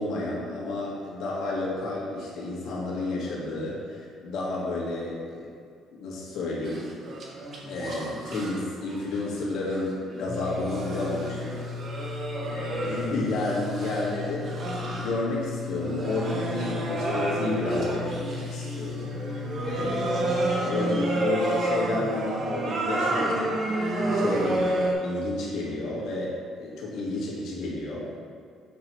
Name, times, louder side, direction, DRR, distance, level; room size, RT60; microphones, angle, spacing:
voice 1, 0.0-5.5 5.9-6.9 7.6-11.6 12.4-14.7 14.9-23.6 24.1-28.1, left 2 dB, 70° left, -5 dB, 1.7 m, -31 dB
sound 1, 6.6-8.6 8.9-9.8 10.5-15.3 15.8-24.9, right 1 dB, 45° right, 1.2 m, -30 dB
sound 2, 10.3-20.6, left 5 dB, 35° left, 0.3 m, -37 dB
7.3 x 5.9 x 3.1 m, 2.2 s
cardioid pair, 115°, 0 cm